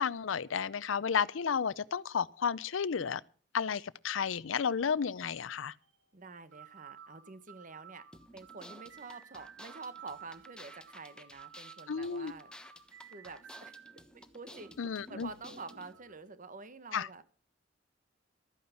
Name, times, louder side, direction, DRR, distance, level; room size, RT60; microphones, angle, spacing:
voice 1, 0.0-3.2 3.5-5.7 11.9-12.3 14.8-15.3 16.9-17.1, left 6 dB, 85° left, 0.5 m, -32 dB
sound 1, 5.8-6.0 6.5-14.0 14.6-16.2, right 7 dB, 75° right, 1.3 m, -54 dB
voice 2, 6.1-8.0 8.3-12.5 13.0-13.8 14.1-14.7 15.1-17.2, right 4 dB, 45° right, 1.2 m, -48 dB
sound 2, 8.1-15.9, left 1 dB, 5° left, 1.1 m, -54 dB
13.0 x 9.4 x 7.0 m
head